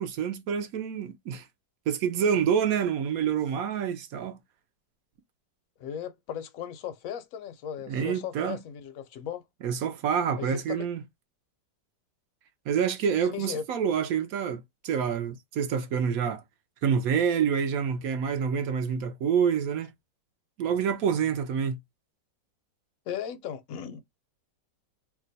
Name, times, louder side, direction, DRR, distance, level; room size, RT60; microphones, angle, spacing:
voice 1, 0.0-1.5 1.9-4.4 7.9-8.6 9.6-11.0 12.7-16.4 16.8-19.9 20.6-21.8, right 7 dB, 70° right, 0.9 m, -27 dB
voice 2, 5.8-9.4 10.4-10.9 13.2-13.6 23.1-24.0, left 8 dB, 70° left, 0.8 m, -37 dB
2.9 x 2.2 x 3.9 m
omnidirectional pair, 1.9 m